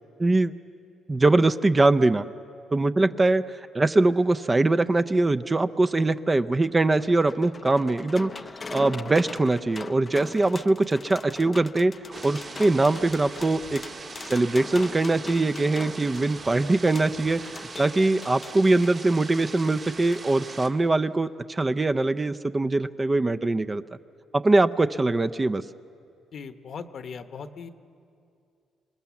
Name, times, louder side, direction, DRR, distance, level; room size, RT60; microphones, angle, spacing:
voice 1, 0.2-0.5 1.1-2.2 2.7-3.5 3.7-8.3 8.7-13.8 14.3-23.8 24.3-25.6, right 2 dB, 25° right, 10 dB, 0.5 m, -22 dB
sound 1, 6.5-19.0 20.1-20.3 20.6-20.7, left 4 dB, 30° left, 0.5 m, -42 dB
sound 2, 12.1-20.7, right 4 dB, 45° right, 2.0 m, -41 dB
voice 2, 26.3-27.7, left 6 dB, 55° left, 10 dB, 1.0 m, -38 dB
27.0 x 19.5 x 7.1 m, 2.5 s
cardioid pair, 90°, 0 cm